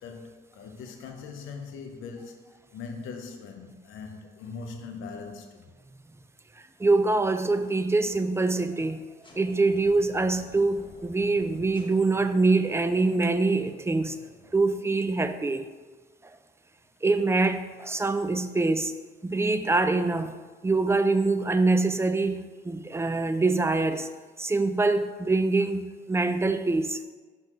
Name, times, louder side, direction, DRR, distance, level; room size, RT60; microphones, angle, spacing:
voice 1, 0.0-5.7, left 4 dB, 85° left, 0.8 m, -41 dB
voice 2, 6.8-9.1 9.4-14.2 14.5-15.7 17.0-18.9 19.2-24.1 24.4-27.0, right 3 dB, 15° right, 0.4 m, -24 dB
sound 1, 9.2-15.2, left 2 dB, 25° left, 1.4 m, -51 dB
6.0 x 4.0 x 5.4 m
cardioid pair, 90°, 20 cm